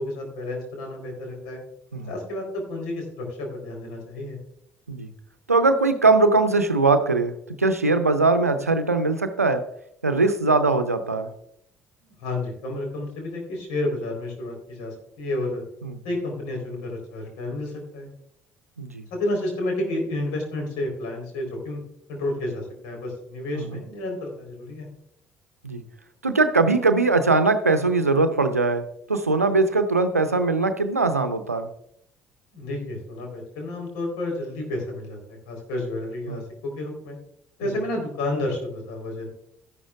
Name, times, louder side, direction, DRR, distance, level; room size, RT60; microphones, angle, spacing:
voice 1, 0.0-1.6 2.1-4.4 12.0-15.6 16.0-18.1 19.1-21.8 22.1-24.9 32.5-37.2 37.6-39.3, left 1 dB, 65° left, 2 dB, 3.9 m, -31 dB
voice 2, 5.5-7.3 7.6-9.7 10.0-11.3 15.8-16.0 18.8-19.0 23.6-23.8 25.6-25.8 26.2-31.7 36.3-36.4, right 3 dB, 90° right, 10 dB, 0.6 m, -21 dB
13.0 x 11.0 x 2.4 m, 0.72 s
figure-of-eight pair, 50°, 8 cm